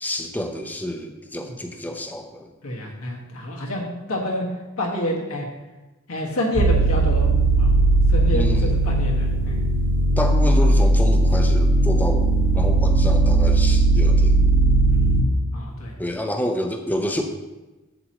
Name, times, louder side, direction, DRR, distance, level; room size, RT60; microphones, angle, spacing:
voice 1, 0.0-2.5 8.3-8.8 10.2-14.4 16.0-17.2, equal, 10° left, 4 dB, 0.6 m, -28 dB
voice 2, 2.6-4.5 4.8-5.5 6.1-7.3 7.6-7.7 8.1-9.6 14.9-15.2 15.5-15.9, left 1 dB, 85° left, -2 dB, 1.6 m, -28 dB
sound 1, 6.5-15.2, right 2 dB, 80° right, 1.1 m, -18 dB
7.9 x 7.6 x 3.0 m, 1.1 s
head